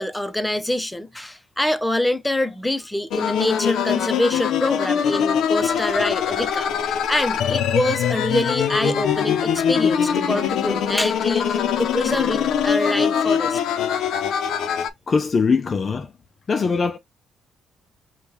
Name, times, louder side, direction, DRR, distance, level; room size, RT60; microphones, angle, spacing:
voice 1, 0.0-13.6, left 1 dB, 5° left, 0.7 m, -25 dB
sound 1, 3.1-14.9, left 8 dB, 80° left, 0.6 m, -22 dB
voice 2, 15.1-16.1 16.5-17.0, left 5 dB, 40° left, 0.4 m, -21 dB
5.4 x 2.3 x 3.0 m
cardioid pair, 90°, 0 cm